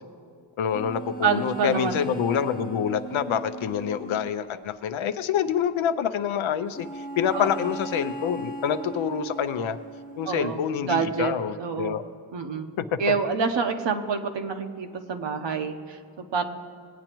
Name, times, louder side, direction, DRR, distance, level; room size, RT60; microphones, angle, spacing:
voice 1, 0.6-9.8 10.2-12.0 12.8-13.1, left 8 dB, 80° left, 11 dB, 0.6 m, -27 dB
sound 1, 0.7-4.4 6.7-10.7, right 2 dB, 20° left, 0.5 m, -38 dB
voice 2, 1.2-2.0 7.3-7.5 10.3-12.0 12.3-12.7 13.0-16.4, right 6 dB, 65° right, 5 dB, 0.9 m, -27 dB
18.5 x 8.8 x 3.0 m, 2.2 s
cardioid pair, 80°, 47 cm